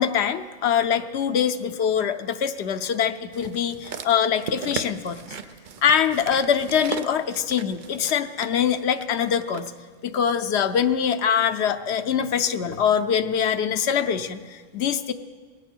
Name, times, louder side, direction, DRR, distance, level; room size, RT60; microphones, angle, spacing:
voice 1, 0.0-5.2 5.8-9.7 10.0-15.1, left 8 dB, 85° left, 8 dB, 0.9 m, -23 dB
sound 1, 3.3-9.7 10.4-10.5, right 6 dB, 55° right, 0.7 m, -37 dB
18.5 x 16.0 x 4.6 m, 1.5 s
omnidirectional pair, 1.1 m